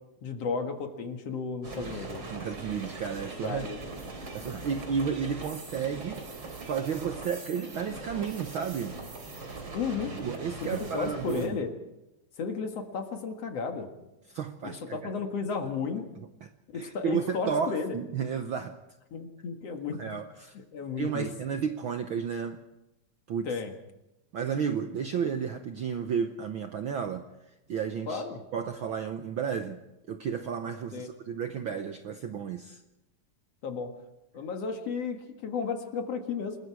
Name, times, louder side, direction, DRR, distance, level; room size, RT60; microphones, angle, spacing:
voice 1, 0.2-2.2 3.4-3.8 9.7-10.2 10.6-11.7 12.4-13.9 14.6-16.1 16.7-18.0 19.1-20.0 20.7-21.3 23.5-23.7 28.1-28.4 30.9-31.1 33.6-33.9 34.3-36.6, left 5 dB, 60° left, 5 dB, 2.8 m, -33 dB
sound 1, 1.6-11.5, right 3 dB, 45° right, 3.9 m, -41 dB
voice 2, 1.8-3.7 4.3-6.2 6.6-9.0 10.2-11.6 14.3-15.0 16.4-16.5 16.8-18.8 20.0-20.5 21.0-22.6 23.3-23.5 24.3-27.3 27.7-28.2 28.5-29.8 30.1-32.8, right 7 dB, 65° right, 7 dB, 1.3 m, -32 dB
27.5 x 21.0 x 4.8 m, 0.94 s
omnidirectional pair, 3.4 m